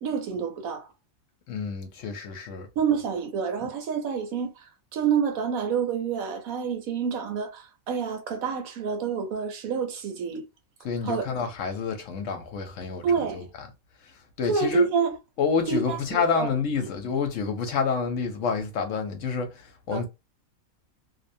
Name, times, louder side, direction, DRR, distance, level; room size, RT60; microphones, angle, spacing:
voice 1, 0.0-0.9 2.8-10.4 11.0-11.3 13.0-13.5 14.5-15.2 15.7-16.5 19.9-20.0, right 6 dB, 75° right, 1.1 m, -28 dB
voice 2, 1.5-2.7 10.8-13.7 14.0-14.9 15.4-20.1, left 5 dB, 70° left, 0.9 m, -29 dB
2.7 x 2.1 x 2.6 m
omnidirectional pair, 1.5 m